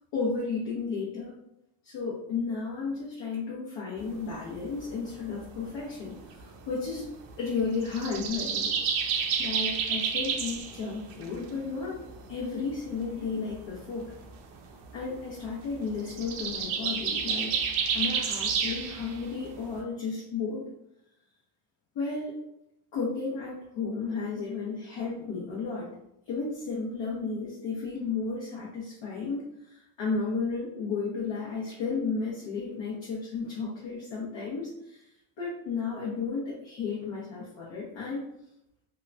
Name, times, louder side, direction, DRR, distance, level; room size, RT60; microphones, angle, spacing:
voice 1, 0.1-1.3 1.8-7.1 7.4-8.7 9.0-14.1 14.9-17.5 17.9-20.7 21.9-22.4 22.9-25.9 26.3-35.1 35.4-38.2, left 4 dB, 60° left, -6 dB, 0.9 m, -33 dB
sound 1, 4.0-19.8, right 6 dB, 75° right, 0.6 m, -31 dB
2.9 x 2.2 x 2.5 m, 0.83 s
cardioid pair, 85°, 50 cm